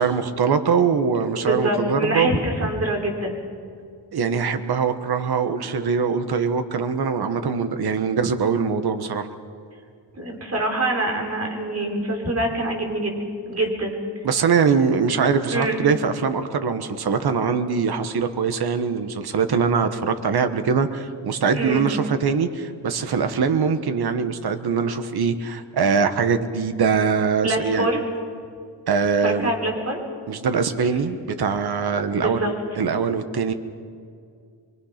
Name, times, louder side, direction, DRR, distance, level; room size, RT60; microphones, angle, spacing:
voice 1, 0.0-2.4 4.1-9.3 14.2-27.9 28.9-29.5 30.3-33.5, right 6 dB, 60° right, 9 dB, 1.3 m, -22 dB
voice 2, 1.4-3.4 10.2-13.2 13.5-14.2 15.5-15.8 21.5-21.9 27.4-28.0 29.2-30.0 30.8-31.0 32.2-32.5, right 1 dB, 35° right, 1 dB, 4.2 m, -25 dB
24.5 x 24.5 x 5.9 m, 2.3 s
wide cardioid pair, 140°, 42 cm